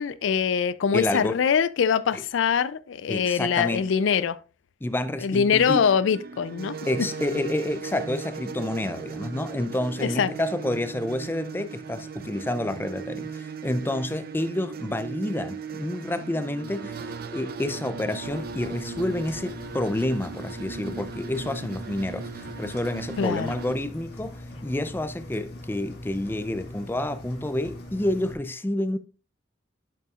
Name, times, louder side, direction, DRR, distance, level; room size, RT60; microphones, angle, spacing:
voice 1, 0.0-4.4 5.2-6.8 10.0-10.3 23.2-23.5, left 7 dB, 75° left, 0.4 m, -23 dB
voice 2, 0.9-1.4 2.1-2.2 3.1-3.9 4.8-5.9 6.9-29.0, left 1 dB, 10° left, 0.4 m, -29 dB
sound 1, 5.6-23.8, right 5 dB, 55° right, 0.6 m, -38 dB
Engine, 18.2-28.3, left 1 dB, 60° left, 1.7 m, -41 dB
11.0 x 5.6 x 2.4 m
head